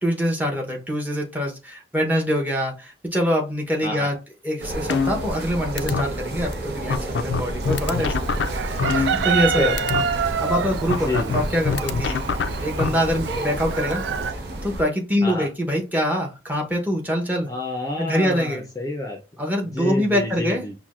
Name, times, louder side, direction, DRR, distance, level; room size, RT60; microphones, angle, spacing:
voice 1, 0.0-4.2 4.4-9.7 10.2-12.2 12.6-17.5 18.0-18.6 19.4-20.6, equal, 10° right, 0 dB, 0.8 m, -25 dB
voice 2, 3.8-4.2 9.6-9.8 11.0-11.4 15.2-15.5 17.5-19.2 19.6-20.7, left 2 dB, 20° left, 1 dB, 0.5 m, -28 dB
sound 1, 4.6-14.8, right 1 dB, 65° right, 0.7 m, -31 dB
sound 2, 4.9-5.5 5.8-6.0 6.5-6.6 6.9-9.5 9.8-10.0 10.9-12.9, left 5 dB, 80° left, 0.3 m, -24 dB
Chicken rooster, 7.6-14.3, right 6 dB, 85° right, 0.3 m, -27 dB
5.8 x 2.2 x 2.4 m, 0.28 s
head